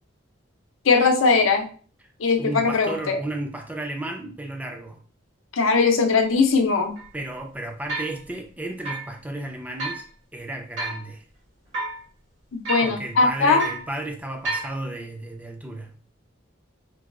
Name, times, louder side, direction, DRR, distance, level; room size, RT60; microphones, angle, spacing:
voice 1, 0.8-1.7 2.2-3.2 5.5-7.0 12.5-13.7, left 4 dB, 85° left, 0.6 m, -20 dB
voice 2, 2.4-5.0 7.1-10.1 10.3-11.2 12.8-16.0, right 1 dB, 10° right, 0.4 m, -33 dB
sound 1, 6.2-6.3 7.0-7.1 7.9-8.2 8.9-9.1 9.8-10.0 10.8-11.1 11.7-12.0 12.6-13.0 13.6-13.9 14.4-14.7, right 3 dB, 75° right, 1.6 m, -30 dB
4.6 x 2.3 x 2.4 m
head